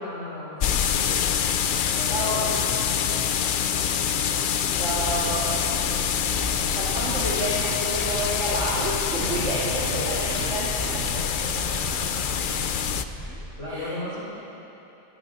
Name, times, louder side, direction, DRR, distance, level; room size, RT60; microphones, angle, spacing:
voice 1, 0.0-1.5 1.8-3.3 9.2-10.0 11.2-12.6 13.2-14.2, left 1 dB, 75° left, -6 dB, 5.2 m, -37 dB
sound 1, 0.6-13.0, left 8 dB, 55° left, 0.6 m, -26 dB
voice 2, 2.1-2.5 3.5-3.9 4.8-11.0 13.7-14.0, equal, 90° right, -8 dB, 2.6 m, -30 dB
sound 2, 4.8-13.5, right 1 dB, 10° right, 1.5 m, -37 dB
sound 3, 7.0-11.7, right 8 dB, 70° right, 1.0 m, -39 dB
23.0 x 15.5 x 4.1 m, 2.9 s
omnidirectional pair, 1.2 m